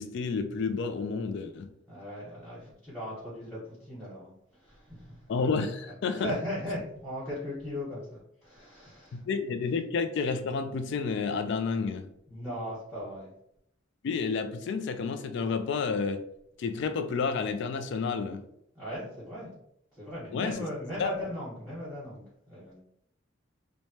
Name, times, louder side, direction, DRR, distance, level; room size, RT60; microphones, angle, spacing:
voice 1, 0.0-1.7 5.3-6.3 9.1-12.1 14.0-16.2 16.6-18.4 20.3-20.7 21.0-21.1, left 5 dB, 60° left, 8 dB, 0.3 m, -30 dB
voice 2, 1.9-5.3 6.1-9.2 12.3-13.3 18.7-19.5 19.9-22.8, equal, ahead, -12 dB, 1.2 m, -38 dB
3.1 x 2.1 x 2.7 m, 0.74 s
head